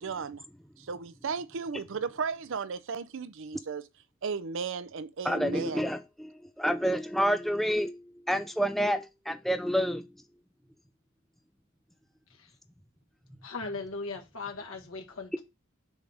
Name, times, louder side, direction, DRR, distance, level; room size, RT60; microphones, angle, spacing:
voice 1, 0.0-0.4 0.8-3.9 4.2-5.9, right 5 dB, 65° right, 0.5 m, -35 dB
voice 2, 5.2-10.1, equal, ahead, 0.3 m, -29 dB
voice 3, 13.4-15.4, left 3 dB, 75° left, 1.6 m, -38 dB
7.1 x 3.5 x 5.2 m
head